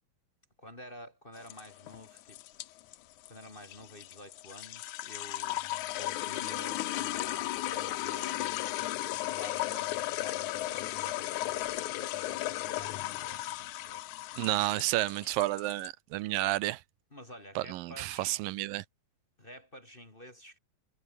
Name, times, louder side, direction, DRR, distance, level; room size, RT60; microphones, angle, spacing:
voice 1, 0.6-2.4 3.3-5.6 6.0-14.1 17.1-18.4 19.4-20.6, equal, 15° left, 2.5 m, -50 dB
sound 1, 1.4-15.9, left 16 dB, 70° left, 2.0 m, -35 dB
voice 2, 14.4-16.8 17.6-18.8, right 17 dB, 85° right, 2.4 m, -31 dB
omnidirectional pair, 4.0 m